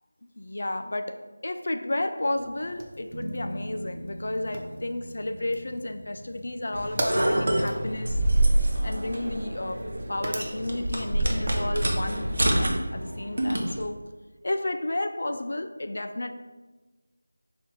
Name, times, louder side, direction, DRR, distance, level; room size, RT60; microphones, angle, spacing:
voice 1, 0.4-8.2 8.8-9.8 10.1-14.1 14.4-16.3, left 1 dB, 50° left, 8 dB, 0.3 m, -32 dB
Fire, 2.3-11.7, right 1 dB, 25° right, 0.3 m, -40 dB
sound 1, 3.1-10.7 13.8-13.9, equal, 85° right, 0.7 m, -44 dB
sound 2, 6.7-13.8, right 1 dB, 50° right, 0.7 m, -26 dB
4.2 x 2.8 x 3.7 m, 1.2 s
figure-of-eight pair, 180°, 0 cm